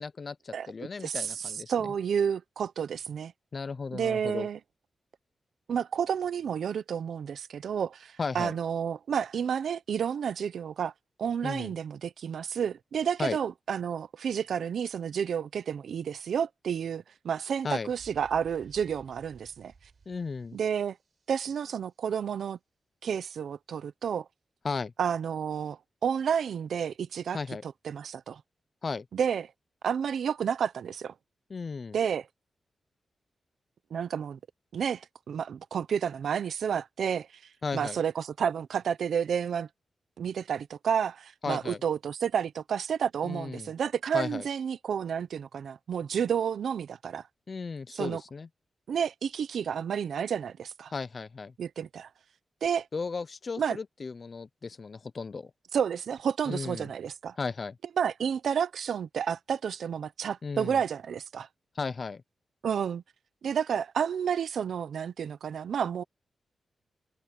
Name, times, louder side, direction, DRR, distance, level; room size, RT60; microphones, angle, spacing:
voice 1, 0.0-1.7 3.5-4.5 8.2-8.5 11.4-11.7 13.2-13.4 17.6-17.9 20.1-20.6 24.6-24.9 27.3-27.6 28.8-29.1 31.5-32.0 37.6-38.0 41.4-41.8 43.2-43.7 44.1-44.5 47.5-48.5 50.9-51.5 52.9-55.5 56.5-56.9 57.4-57.8 60.4-60.8 61.7-62.2, left 4 dB, 40° left, 0.4 m, -35 dB
voice 2, 1.0-1.3 1.7-3.3 3.9-4.6 5.7-10.9 11.2-19.7 20.5-20.9 21.3-22.6 23.0-24.3 25.0-28.4 29.1-29.5 29.8-31.1 31.9-32.3 33.9-34.4 34.7-37.3 37.7-39.7 40.2-47.2 47.9-48.2 48.9-50.9 51.6-52.1 52.6-52.9 53.6-53.8 55.7-57.4 58.0-61.5 62.6-63.0 63.4-66.0, right 7 dB, 85° right, 0.7 m, -30 dB
sound 1, 17.9-21.7, right 5 dB, 50° right, 6.0 m, -56 dB
wide cardioid pair, 125°, 0 cm